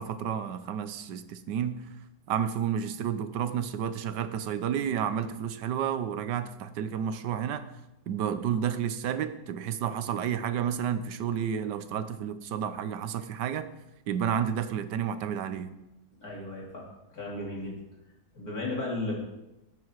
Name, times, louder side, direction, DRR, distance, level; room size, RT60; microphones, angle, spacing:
voice 1, 0.0-1.9 2.3-7.7 8.1-13.7 14.1-15.7, right 8 dB, 85° right, 1.4 m, -31 dB
voice 2, 16.2-16.8 17.1-17.7 18.3-19.2, left 2 dB, 60° left, 3.8 m, -34 dB
18.5 x 7.6 x 4.7 m
omnidirectional pair, 1.8 m